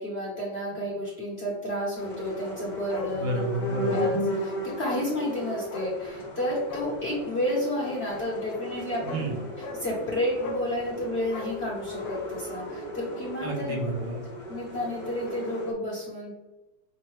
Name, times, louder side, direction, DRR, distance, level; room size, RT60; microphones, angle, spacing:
voice 1, 0.0-3.3 3.9-4.1 4.4-9.2 9.8-13.7 14.5-16.3, left 1 dB, 45° left, -6 dB, 1.0 m, -31 dB
sound 1, 2.0-15.7, left 1 dB, 25° left, 0.8 m, -35 dB
Bark, 2.9-3.2 3.5-3.6 3.9-4.2 4.8-5.1 5.7-6.0 6.6-6.9 8.5-8.6 9.0-9.3 9.6-9.8 10.4-10.7 11.2-12.3 12.6-12.7, equal, 70° left, 1.2 m, -37 dB
voice 2, 3.1-4.1 9.0-9.4 13.4-14.2, right 1 dB, 75° right, 0 dB, 1.6 m, -30 dB
6.1 x 2.1 x 3.1 m, 1.0 s
omnidirectional pair, 2.1 m